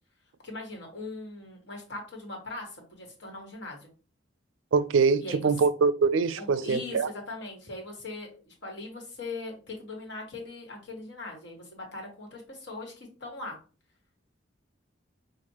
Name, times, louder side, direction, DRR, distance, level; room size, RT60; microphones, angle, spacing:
voice 1, 0.4-3.9 5.2-5.5 6.4-13.6, left 2 dB, 65° left, 1.6 m, -40 dB
voice 2, 4.7-7.1, right 5 dB, 80° right, 0.4 m, -24 dB
6.0 x 2.5 x 2.8 m
head